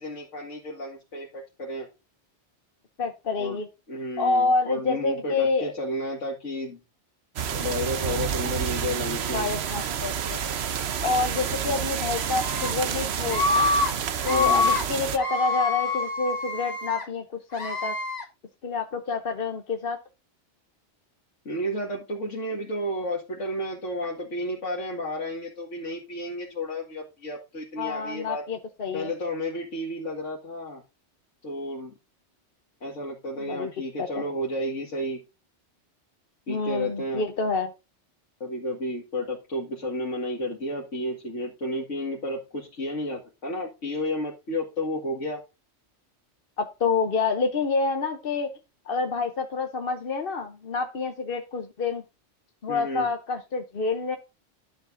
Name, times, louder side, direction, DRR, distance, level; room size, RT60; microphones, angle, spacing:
voice 1, 0.0-1.9 3.4-3.6 3.9-6.8 7.5-9.5 11.6-11.8 14.3-14.7 21.5-28.4 28.9-30.8 31.4-31.9 32.8-35.2 36.5-37.3 38.4-45.4 52.7-53.1, left 1 dB, 90° left, 2.3 m, -32 dB
voice 2, 3.0-3.7 4.2-5.7 9.3-10.4 11.0-13.7 14.2-17.2 17.5-18.0 18.6-20.0 27.8-29.1 33.4-33.7 34.0-34.2 36.5-37.7 46.6-48.5 48.9-52.0 52.6-54.2, left 4 dB, 55° left, 1.0 m, -27 dB
sound 1, 7.4-15.2, right 8 dB, 65° right, 1.0 m, -29 dB
Screaming, 12.1-12.7 13.3-13.9 14.2-14.8 15.2-17.0 17.5-18.2, left 3 dB, 35° left, 1.8 m, -26 dB
11.5 x 7.2 x 2.6 m
omnidirectional pair, 1.2 m